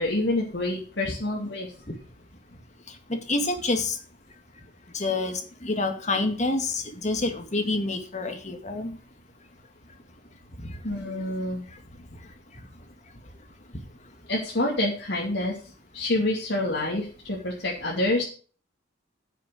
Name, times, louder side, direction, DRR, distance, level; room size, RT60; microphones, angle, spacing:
voice 1, 0.0-1.7 10.8-11.6 14.3-15.5 15.9-18.2, left 1 dB, 65° left, -2 dB, 2.6 m, -27 dB
voice 2, 3.1-4.0 4.9-9.0 10.6-10.7, left 2 dB, 40° left, 6 dB, 2.0 m, -27 dB
9.8 x 6.7 x 6.4 m, 0.39 s
head